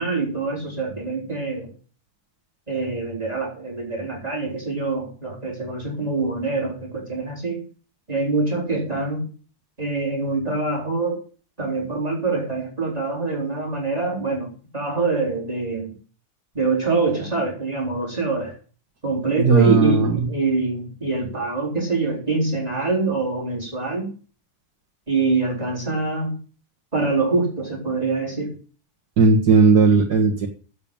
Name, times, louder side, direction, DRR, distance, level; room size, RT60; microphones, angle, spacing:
voice 1, 0.0-1.7 2.7-7.6 8.1-9.2 9.8-11.2 11.6-15.9 16.5-18.5 19.0-24.1 25.1-26.4 26.9-28.5, right 3 dB, 25° right, -3 dB, 4.3 m, -24 dB
voice 2, 19.5-20.1 29.2-30.5, right 4 dB, 85° right, 0 dB, 2.1 m, -15 dB
9.0 x 7.9 x 8.7 m, 0.39 s
omnidirectional pair, 1.7 m